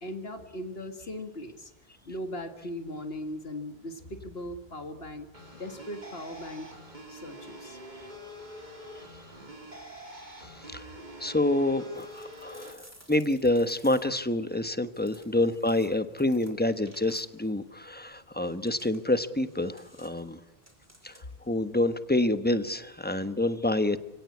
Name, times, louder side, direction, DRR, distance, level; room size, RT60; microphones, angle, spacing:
voice 1, 0.0-1.7 2.1-6.7 7.1-7.8, left 1 dB, 70° left, 6 dB, 2.1 m, -39 dB
sound 1, 5.3-12.7, equal, 45° right, 3.7 m, -45 dB
voice 2, 10.3-20.4 21.0-21.2 21.5-24.0, left 1 dB, 10° left, 10 dB, 1.1 m, -28 dB
sound 2, 11.9-14.3 14.9-17.6 18.4-21.5, right 1 dB, 15° right, 3.4 m, -57 dB
29.5 x 17.5 x 8.5 m, 0.96 s
omnidirectional pair, 1.1 m